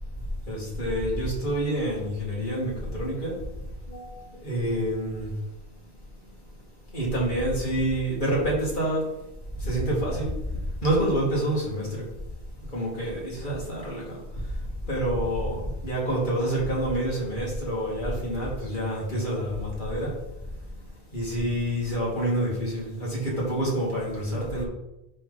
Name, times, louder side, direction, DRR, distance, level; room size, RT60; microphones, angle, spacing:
voice 1, 0.5-3.3 3.9-4.1 4.4-5.3 6.9-9.0 9.6-10.3 10.8-12.0 12.7-14.2 14.9-20.1 21.1-24.6, right 1 dB, 45° left, -5 dB, 2.8 m, -27 dB
10.5 x 4.0 x 4.2 m, 0.92 s
omnidirectional pair, 1.1 m